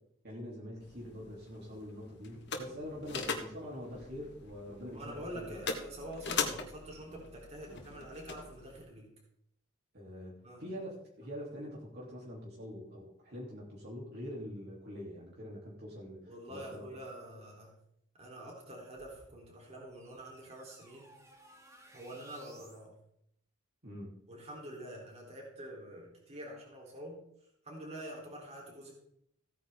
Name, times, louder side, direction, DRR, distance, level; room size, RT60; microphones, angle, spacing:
voice 1, 0.2-5.6 6.3-6.5 7.7-7.8 9.9-16.8 23.8-24.1, equal, 55° right, -4 dB, 3.3 m, -45 dB
sound 1, 0.8-8.8, left 5 dB, 55° left, 1.7 m, -41 dB
voice 2, 4.9-9.1 10.4-10.6 16.3-17.7 18.2-21.1 21.9-23.0 24.3-27.2 27.6-28.9, right 1 dB, 30° right, -2 dB, 3.8 m, -46 dB
sound 2, 18.9-22.9, right 1 dB, 15° right, 1.8 m, -60 dB
16.0 x 9.3 x 3.7 m, 0.75 s
head